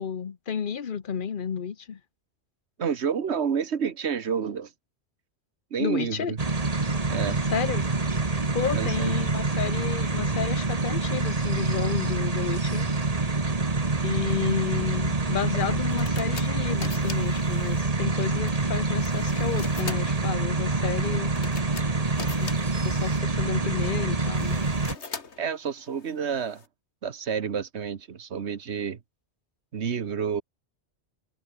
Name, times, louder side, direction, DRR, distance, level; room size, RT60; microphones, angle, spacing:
voice 1, 0.0-2.0 5.8-6.4 7.5-7.9 8.5-12.9 14.0-21.3 22.4-22.5 22.8-24.6, left 7 dB, 50° left, 1.1 m, -31 dB
voice 2, 2.8-4.7 5.7-6.4 7.1-7.4 8.7-9.2 25.4-26.6 27.0-29.0 29.7-30.4, right 7 dB, 75° right, 1.5 m, -29 dB
sound 1, 6.4-24.9, right 3 dB, 35° right, 1.7 m, -26 dB
sound 2, 15.5-26.7, left 4 dB, 80° left, 2.3 m, -43 dB
omnidirectional pair, 1.1 m